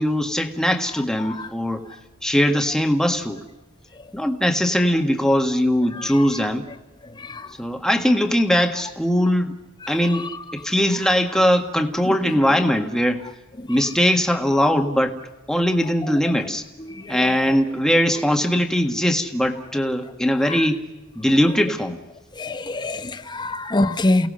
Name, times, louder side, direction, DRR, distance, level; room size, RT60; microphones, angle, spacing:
voice 1, 0.0-1.8 2.2-3.4 4.1-6.6 7.6-9.6 9.9-10.2 10.5-13.3 13.7-15.2 15.5-16.7 17.1-20.8 21.1-22.0, equal, 5° left, 1.6 m, -20 dB
voice 2, 5.9-6.3 7.0-7.6 9.8-10.3 12.0-12.2 13.6-13.8 16.8-17.5 20.4-20.7 22.3-24.3, left 2 dB, 20° left, 0.9 m, -26 dB
29.0 x 18.0 x 6.4 m
head